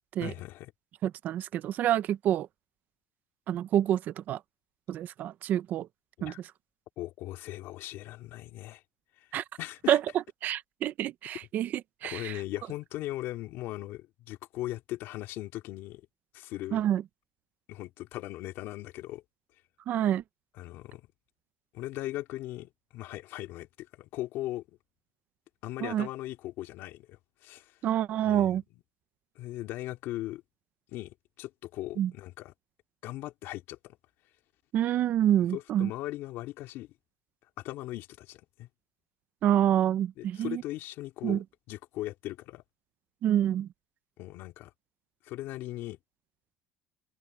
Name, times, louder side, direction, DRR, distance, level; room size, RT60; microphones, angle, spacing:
voice 1, 0.2-0.7 6.2-6.4 7.0-8.8 9.2-10.0 12.0-16.1 16.3-16.8 17.7-19.2 20.5-21.0 21.7-24.6 25.6-27.8 28.2-28.8 29.3-30.4 30.9-32.5 33.0-34.0 35.5-36.9 37.6-38.7 40.2-41.4 41.7-42.6 44.2-44.7 45.2-46.0, left 16 dB, 55° left, 3.0 m, -39 dB
voice 2, 1.0-2.5 3.5-4.4 4.9-5.9 6.2-6.3 9.3-9.4 9.9-10.0 10.4-11.7 12.0-12.4 16.7-17.0 19.9-20.2 25.8-26.1 27.8-28.6 32.0-32.1 34.7-35.9 39.4-40.6 41.2-41.4 43.2-43.7, right 11 dB, 40° right, 0.6 m, -27 dB
cardioid pair, 170°, 5 cm